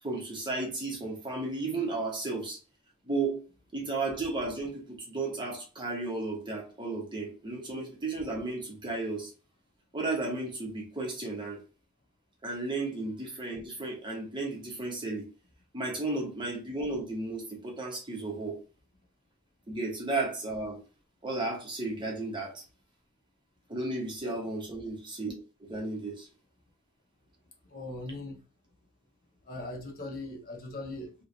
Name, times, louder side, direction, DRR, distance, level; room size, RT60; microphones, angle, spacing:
voice 1, 0.0-2.6 3.0-3.4 3.7-9.3 9.9-11.6 12.4-15.3 15.7-18.6 19.7-20.8 21.2-22.6 23.7-25.4 25.7-26.3, right 2 dB, 25° right, 1.0 m, -34 dB
voice 2, 27.6-28.4 29.4-31.2, left 2 dB, 45° left, 1.0 m, -40 dB
3.1 x 3.1 x 2.6 m
head